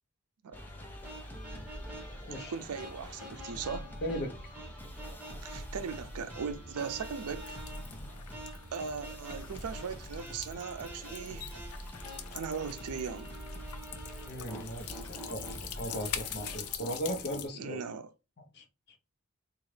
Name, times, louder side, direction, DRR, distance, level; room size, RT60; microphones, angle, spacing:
sound 1, 0.5-16.8, equal, 10° left, 0.6 m, -45 dB
sound 2, 1.0-17.5, right 1 dB, 5° right, 1.3 m, -49 dB
voice 1, 2.4-3.9 5.4-7.6 8.7-11.5 12.3-13.3 17.6-18.1, right 6 dB, 85° right, 0.5 m, -39 dB
voice 2, 4.0-4.3 14.2-17.8 18.5-19.0, equal, 50° left, 0.8 m, -38 dB
sound 3, 7.4-17.5, left 8 dB, 85° left, 0.6 m, -44 dB
3.8 x 2.4 x 3.2 m
head